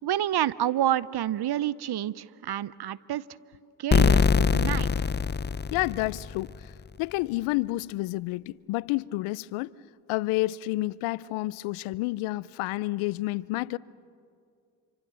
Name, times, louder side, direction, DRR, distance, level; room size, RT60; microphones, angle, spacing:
voice 1, 0.0-3.2 3.8-4.9, right 12 dB, 55° right, 0.8 m, -28 dB
sound 1, 3.9-6.6, left 5 dB, 20° left, 0.6 m, -23 dB
voice 2, 5.7-6.5 7.0-9.7 10.1-13.8, left 19 dB, 80° left, 0.6 m, -29 dB
27.0 x 25.0 x 7.0 m
hypercardioid pair, 50°, 48 cm